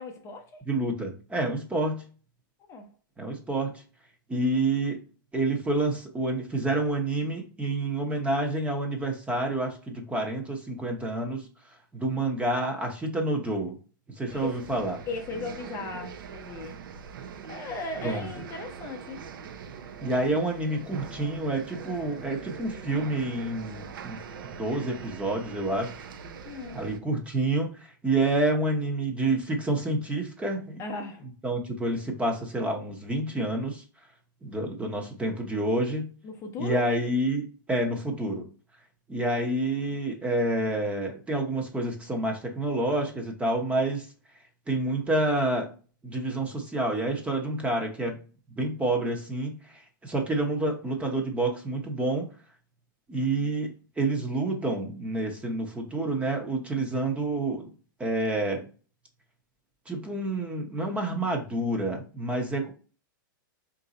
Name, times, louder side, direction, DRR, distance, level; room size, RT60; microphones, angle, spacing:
voice 1, 0.0-0.6 2.7-2.9 14.3-14.6 15.1-16.8 17.5-19.2 26.5-26.8 30.8-31.3 36.2-36.8, left 3 dB, 25° left, 3 dB, 0.6 m, -37 dB
voice 2, 0.7-2.0 3.2-3.8 4.3-5.0 5.3-11.4 11.9-13.7 14.2-15.0 18.0-18.3 20.0-25.9 26.7-30.8 31.4-33.8 34.4-36.1 36.6-38.4 39.1-44.1 44.7-45.7 46.0-48.2 48.6-52.3 53.1-57.7 58.0-58.6 59.9-62.7, right 2 dB, 10° right, 2 dB, 0.8 m, -28 dB
sound 1, 14.3-27.0, right 7 dB, 75° right, 0.6 m, -42 dB
3.8 x 2.6 x 4.0 m, 0.37 s
hypercardioid pair, 130°, 11 cm